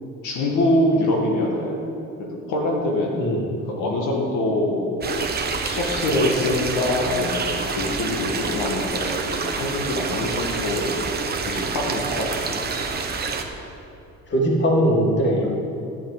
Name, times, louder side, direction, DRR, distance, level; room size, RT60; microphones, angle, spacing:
voice 1, 0.2-1.9 2.5-5.2 5.6-10.9 11.5-12.6, left 1 dB, 85° left, -1 dB, 1.9 m, -24 dB
sound 1, 5.0-13.4, right 4 dB, 35° right, 1.1 m, -27 dB
voice 2, 14.3-15.5, equal, 40° left, -2 dB, 2.5 m, -20 dB
11.0 x 5.8 x 8.0 m, 2.7 s
cardioid pair, 125°, 29 cm